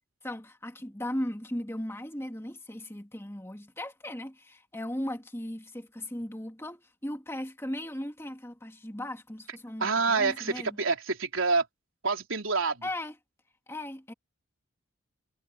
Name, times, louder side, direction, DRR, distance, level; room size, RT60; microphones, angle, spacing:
voice 1, 0.2-10.8 12.8-13.2 13.7-14.1, left 1 dB, 10° left, 2.1 m, -37 dB
voice 2, 9.8-11.7 12.0-12.8, right 4 dB, 75° right, 3.7 m, -27 dB
head